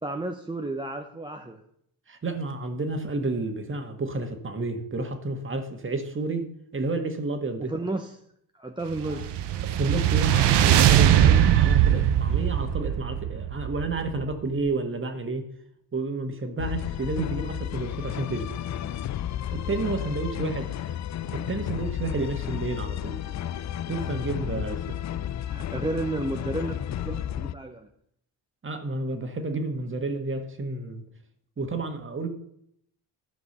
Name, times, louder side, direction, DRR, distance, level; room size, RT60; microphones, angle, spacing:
voice 1, 0.0-1.6 7.6-8.1 8.5-9.3 20.0-20.1 24.4-24.7 25.4-27.9, right 2 dB, 10° right, 4 dB, 0.8 m, -32 dB
voice 2, 2.1-6.5 6.7-7.7 9.0-9.3 9.6-15.4 15.9-18.5 19.5-21.0 21.3-23.2 23.9-25.0 28.6-31.0 31.6-32.3, right 3 dB, 30° right, 6 dB, 1.8 m, -31 dB
sound 1, 9.0-14.4, right 10 dB, 75° right, 1.0 m, -21 dB
sound 2, 16.6-27.5, left 11 dB, 45° left, 0.5 m, -32 dB
13.0 x 5.2 x 6.7 m, 0.72 s
cardioid pair, 110°, 42 cm